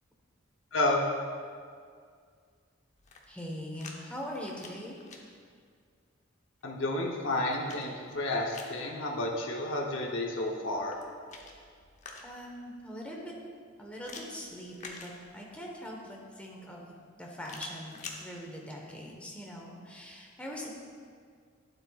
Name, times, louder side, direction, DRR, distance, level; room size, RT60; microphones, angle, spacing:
voice 1, 0.7-1.0 6.6-10.9, left 2 dB, 70° left, -1 dB, 0.9 m, -31 dB
sound 1, 2.9-4.0 4.3-5.2 6.9-8.8 10.8-12.5 14.0-15.6 17.4-18.2, left 4 dB, 35° left, 0.9 m, -48 dB
voice 2, 3.3-5.0 12.2-13.3 13.8-20.7, equal, 5° left, -2 dB, 1.2 m, -42 dB
12.0 x 8.9 x 2.4 m, 2.1 s
head